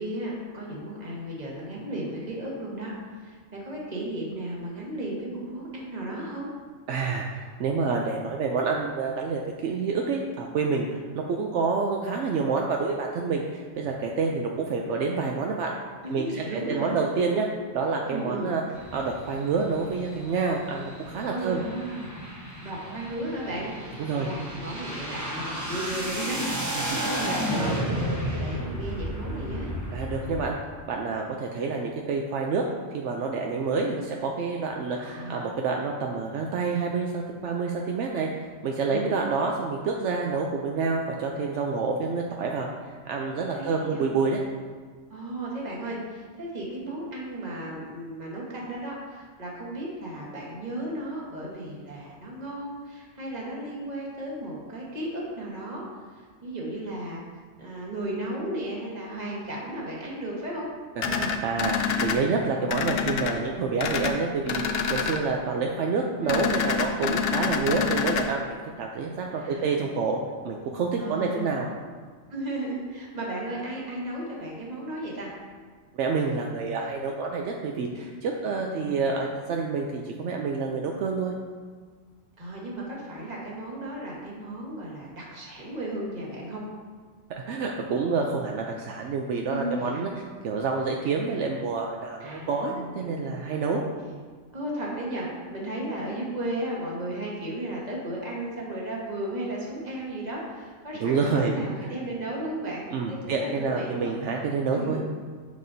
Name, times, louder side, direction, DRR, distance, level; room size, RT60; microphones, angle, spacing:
voice 1, 0.0-6.5 16.0-17.0 18.1-18.5 21.3-22.1 22.6-23.7 24.1-29.7 34.9-35.5 38.9-39.1 43.5-44.1 45.1-57.2 57.6-60.7 66.2-66.5 69.3-70.0 71.0-71.7 72.3-75.3 78.4-79.0 82.4-86.6 89.5-90.1 92.2-93.6 94.5-104.2 104.7-105.0, right 1 dB, 35° right, -4 dB, 1.4 m, -35 dB
voice 2, 6.9-10.9 11.1-15.7 16.1-17.5 17.7-18.6 18.9-21.6 24.0-24.3 26.8-27.9 29.9-30.6 30.9-32.7 32.9-38.3 38.6-42.7 43.1-44.4 61.1-70.2 70.4-71.7 75.9-81.3 87.5-90.1 90.4-93.8 101.0-101.5 101.8-101.9 102.9-105.0, right 4 dB, 75° right, 0 dB, 0.9 m, -28 dB
sound 1, 18.7-30.4, equal, 20° right, 0.7 m, -33 dB
sound 2, 61.0-62.2 62.7-63.3 63.8-64.1 64.5-65.2 66.3-68.2, left 6 dB, 65° left, 0.7 m, -26 dB
6.6 x 6.5 x 2.6 m, 1.5 s
omnidirectional pair, 1.2 m